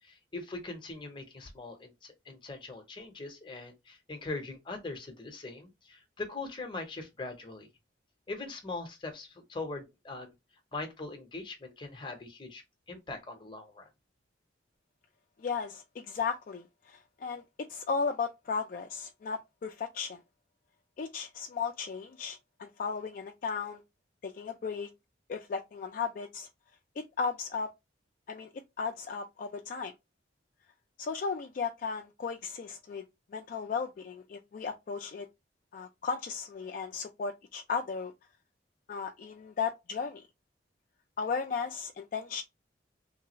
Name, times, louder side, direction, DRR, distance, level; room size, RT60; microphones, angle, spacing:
voice 1, 0.0-7.7 8.3-10.3 10.7-12.6 12.9-13.9, left 3 dB, 25° left, 0.7 m, -41 dB
voice 2, 15.4-20.2 21.0-23.8 24.2-24.9 25.3-26.5 27.0-27.7 28.3-28.5 28.8-29.9 31.0-33.0 33.3-35.3 35.7-38.1 38.9-40.2 41.2-42.4, left 5 dB, 45° left, 0.3 m, -35 dB
3.2 x 2.3 x 2.8 m
head